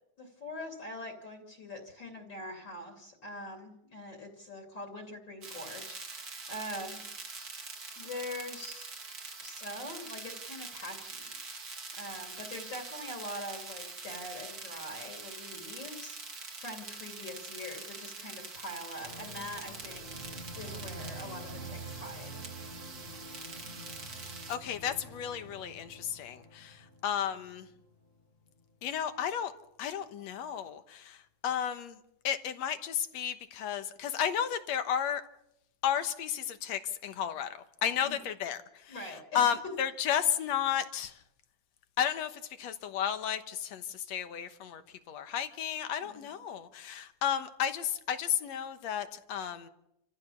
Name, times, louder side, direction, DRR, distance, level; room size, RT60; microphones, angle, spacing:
voice 1, 0.2-7.0 8.0-8.9 9.4-11.7 12.0-22.5 38.0-38.2 38.9-39.5 46.0-46.3, left 1 dB, 40° left, 2 dB, 3.0 m, -43 dB
sound 1, 5.4-24.6, right 4 dB, 35° right, 2.1 m, -44 dB
sound 2, 19.0-28.2 28.4-28.6, right 2 dB, 50° right, 4.3 m, -47 dB
voice 2, 24.5-27.7 28.8-29.5 29.8-32.0 32.2-35.2 35.8-37.5 37.8-41.2 42.0-44.8 45.1-49.7, left 9 dB, 65° left, 9 dB, 2.2 m, -33 dB
29.0 x 15.0 x 7.0 m, 0.81 s
omnidirectional pair, 3.5 m